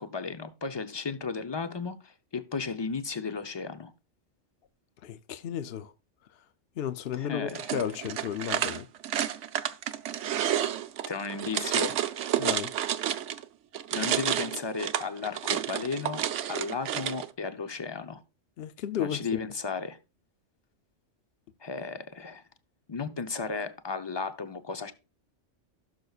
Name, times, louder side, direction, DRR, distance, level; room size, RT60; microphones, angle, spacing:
voice 1, 0.0-3.9 7.1-7.7 11.1-12.0 13.9-18.2 19.0-20.0 21.6-22.4 22.9-24.9, left 5 dB, 30° left, 0.6 m, -34 dB
voice 2, 5.0-5.9 6.8-8.9 12.4-12.7 18.6-19.4, left 9 dB, 60° left, 0.8 m, -33 dB
sound 1, 7.5-13.4 13.7-17.3, right 10 dB, 80° right, 1.0 m, -30 dB
16.0 x 6.7 x 2.4 m
omnidirectional pair, 1.2 m